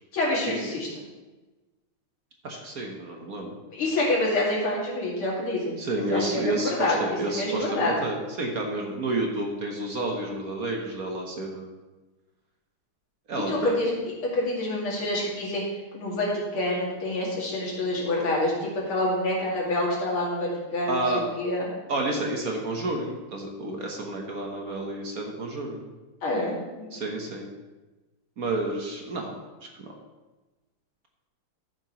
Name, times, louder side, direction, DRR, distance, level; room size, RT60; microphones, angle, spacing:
voice 1, 0.1-0.9 3.7-7.9 13.5-13.9 14.3-15.6 15.9-21.0 21.4-21.7 26.2-26.9, left 1 dB, 85° left, -4 dB, 3.2 m, -27 dB
voice 2, 2.4-3.5 5.8-11.7 13.3-13.7 20.9-21.2 21.9-25.9 26.9-27.5 28.4-29.3 29.6-29.9, right 2 dB, 50° right, 1 dB, 1.4 m, -30 dB
14.0 x 7.6 x 3.1 m, 1.2 s
omnidirectional pair, 2.3 m